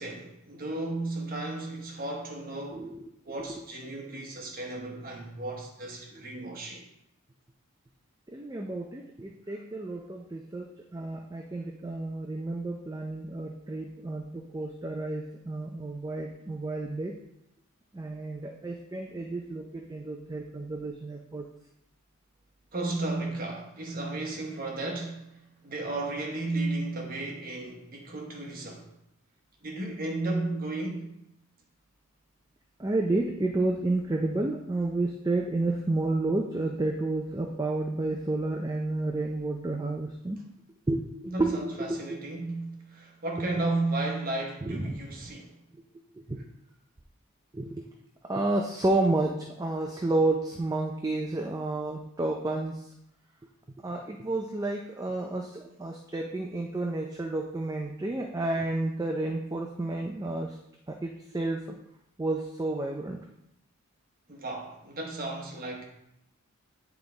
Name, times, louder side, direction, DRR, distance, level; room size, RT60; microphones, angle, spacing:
voice 1, 0.0-2.9 3.2-6.9 22.7-25.3 25.6-28.9 29.6-31.1 41.3-45.6 64.3-65.8, right 2 dB, 40° right, 1.1 m, -34 dB
voice 2, 2.7-3.0 6.1-6.2 8.3-17.2 17.9-21.5 32.8-40.4 40.9-41.5 41.8-42.2 44.6-45.3 46.2-46.4 47.5-47.8 48.2-52.9 53.8-60.6 60.9-61.8 62.2-63.2, right 2 dB, 15° right, 0.4 m, -31 dB
9.0 x 3.5 x 3.9 m
head